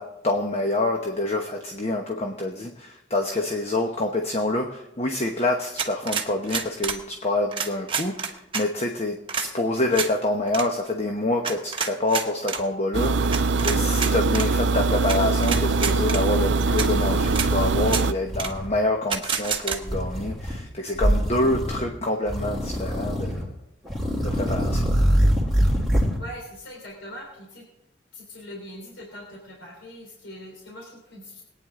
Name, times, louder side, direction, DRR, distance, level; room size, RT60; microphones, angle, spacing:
voice 1, 0.0-23.5 24.2-24.9, left 2 dB, 35° left, 3 dB, 1.0 m, -27 dB
sound 1, 5.8-7.0 7.5-8.6 9.3-9.5 9.9-10.1 10.5-10.7 11.4-12.6 13.3-14.5 15.1-15.2 15.4-16.2 16.8-16.9 17.3-17.5 17.8-18.0 18.4-18.5 19.1-19.8, right 6 dB, 25° right, 1.1 m, -28 dB
sound 2, 12.6-12.7 13.0-14.1 14.5-15.0 15.4-16.0 16.3-18.0 18.3-18.8 19.8-20.6 20.9-21.9 22.3-23.5 23.8-26.2, equal, ahead, 2.7 m, -25 dB
sound 3, 12.9-18.1, right 3 dB, 75° right, 0.5 m, -22 dB
voice 2, 26.2-27.6 28.1-31.4, equal, 80° left, -1 dB, 3.4 m, -41 dB
22.0 x 9.3 x 3.7 m, 0.87 s
head